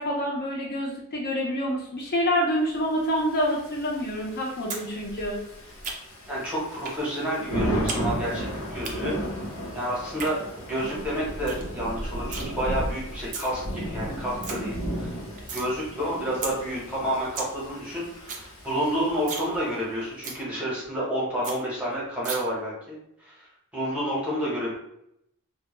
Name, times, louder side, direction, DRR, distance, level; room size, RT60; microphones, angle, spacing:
voice 1, 0.0-5.4, equal, 45° left, -2 dB, 0.5 m, -27 dB
Thunder / Rain, 3.2-19.8, right 1 dB, 80° left, 0.8 m, -34 dB
sound 1, 4.7-4.9 5.1-6.3 6.8-7.0 7.3-8.0 8.3-8.9 10.0-10.3 10.8-10.9 11.2-11.3 11.5-11.7 11.9-12.5 13.1-13.5 13.9-14.0 14.2-14.5 14.9-15.7 16.0-16.1 16.4-16.5 16.9-17.0 17.2-17.5 17.8-17.9 18.1-18.5 18.8-18.9 19.2-19.5 19.8-19.9 20.2-20.4 20.8-20.9 21.1-21.2 21.4-21.6 22.2-22.4, right 4 dB, 35° right, 0.3 m, -34 dB
voice 2, 6.3-9.1 9.7-10.4 10.6-15.2 15.5-23.5 23.7-24.8, equal, 5° right, -7 dB, 0.8 m, -30 dB
2.1 x 2.0 x 3.0 m, 0.78 s
head